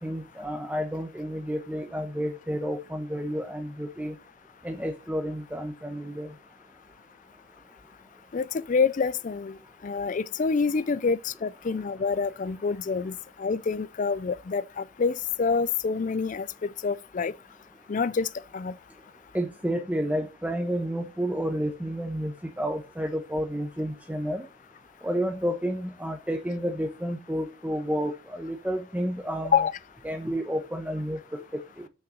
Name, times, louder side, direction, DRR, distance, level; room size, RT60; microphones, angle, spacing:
voice 1, 0.0-4.2 4.6-6.3 19.3-24.5 25.0-29.6 30.0-31.9, equal, 10° right, 0.9 m, -31 dB
voice 2, 8.3-9.6 9.8-17.3 17.9-18.3 18.5-18.7 29.5-29.7, left 5 dB, 40° left, 0.4 m, -27 dB
6.4 x 5.9 x 6.3 m
head